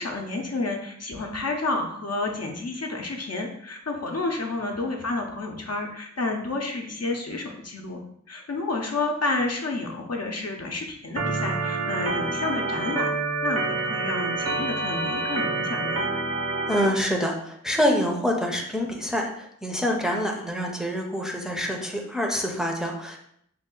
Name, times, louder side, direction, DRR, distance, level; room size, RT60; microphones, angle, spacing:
voice 1, 0.0-8.0 8.3-13.2 13.4-16.1, left 3 dB, 55° left, 2 dB, 0.6 m, -30 dB
Organ, 11.2-16.9, right 3 dB, 55° right, 0.8 m, -27 dB
voice 2, 16.7-23.2, equal, ahead, 1 dB, 0.6 m, -26 dB
3.3 x 2.3 x 3.7 m, 0.70 s
wide cardioid pair, 45°, 30 cm